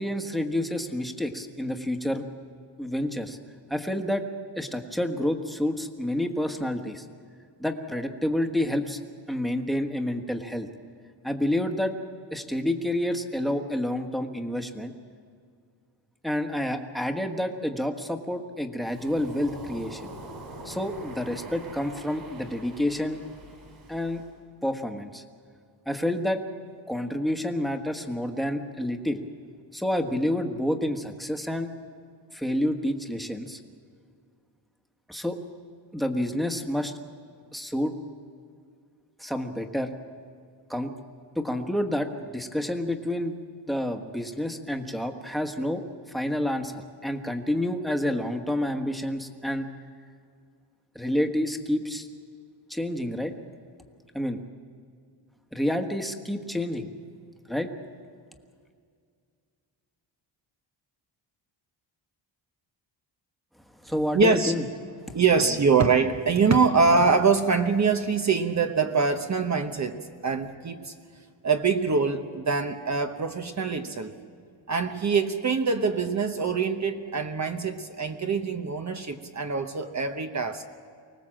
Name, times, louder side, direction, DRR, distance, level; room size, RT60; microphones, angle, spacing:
voice 1, 0.0-2.2 2.8-3.4 3.7-4.2 4.6-7.0 7.6-9.0 9.3-10.7 11.2-11.9 12.3-14.9 16.2-20.1 20.6-23.2 23.9-24.2 24.6-25.2 25.8-26.4 26.9-29.2 29.7-31.7 32.3-33.6 35.1-35.4 35.9-36.9 37.5-37.9 39.2-39.9 40.7-40.9 41.3-43.4 43.7-45.8 46.1-49.7 50.9-52.1 52.7-53.3 54.1-54.4 55.5-56.9 57.5-57.7 63.8-64.6 65.1-65.2, left 1 dB, ahead, 4 dB, 1.4 m, -29 dB
Waves surf, 18.9-24.3, right 1 dB, 55° right, 5.5 m, -43 dB
voice 2, 64.1-64.5 65.1-70.9 71.4-74.1 74.7-80.6, right 4 dB, 40° right, 6 dB, 1.0 m, -24 dB
24.5 x 19.0 x 7.6 m, 2.2 s
wide cardioid pair, 140°, 45 cm